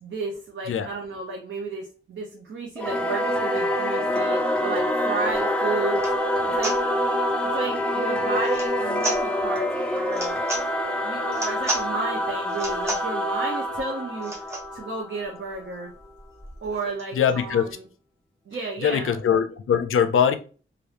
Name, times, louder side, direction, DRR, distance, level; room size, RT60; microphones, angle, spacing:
voice 1, 0.0-6.0 6.6-6.7 7.4-10.4 11.0-14.3 14.7-15.9 16.6-17.9 18.5-19.2, right 3 dB, 65° right, 0.6 m, -33 dB
Singing / Musical instrument, 2.8-15.7, left 1 dB, 5° left, 0.4 m, -26 dB
sound 1, 5.4-5.5 5.9-6.2 6.6-6.8 8.4-8.7 9.0-9.2 10.1-10.7 11.3-11.9 12.5-13.1 14.2-14.7 15.2-15.3 15.5-15.6 15.9-17.4, right 1 dB, 15° right, 0.9 m, -32 dB
voice 2, 17.2-17.7 18.8-20.4, left 8 dB, 85° left, 0.4 m, -21 dB
2.9 x 2.5 x 3.2 m
wide cardioid pair, 155°, 21 cm